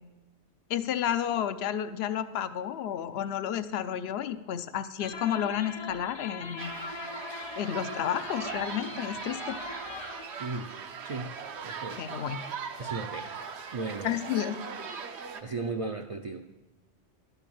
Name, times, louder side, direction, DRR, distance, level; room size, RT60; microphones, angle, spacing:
voice 1, 0.7-6.7 7.6-9.6 12.0-12.4 14.0-14.5, left 10 dB, 70° left, 13 dB, 0.8 m, -31 dB
sound 1, 5.0-10.4, left 3 dB, 50° left, 0.3 m, -41 dB
sound 2, 6.6-15.4, right 6 dB, 75° right, 1.0 m, -40 dB
voice 2, 10.4-10.7 11.0-11.3 11.6-12.0 12.8-13.4 13.7-14.2 15.4-16.4, right 3 dB, 45° right, 4 dB, 0.4 m, -35 dB
12.0 x 5.8 x 7.0 m, 1.1 s
omnidirectional pair, 1.1 m